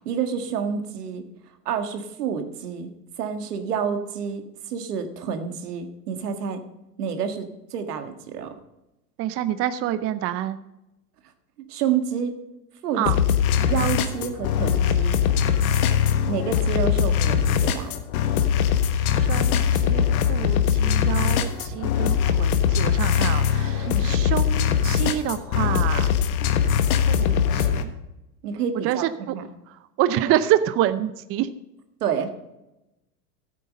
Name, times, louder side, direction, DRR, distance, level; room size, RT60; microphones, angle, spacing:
voice 1, 0.1-1.2 1.7-2.9 3.2-6.6 7.0-8.5 11.7-12.3 12.8-13.0 13.7-15.2 16.3-17.9 21.7-21.8 23.9-24.1 28.4-29.5 32.0-32.3, right 7 dB, 75° right, 7 dB, 1.8 m, -28 dB
voice 2, 9.2-10.6 13.0-13.2 19.1-26.1 27.1-27.9 28.8-29.0 29.3-29.4 30.0-31.5, right 12 dB, 30° right, 12 dB, 0.6 m, -27 dB
sound 1, 13.0-27.8, left 8 dB, 65° left, 1.4 m, -21 dB
13.5 x 8.5 x 5.3 m, 0.94 s
hypercardioid pair, 105°, 46 cm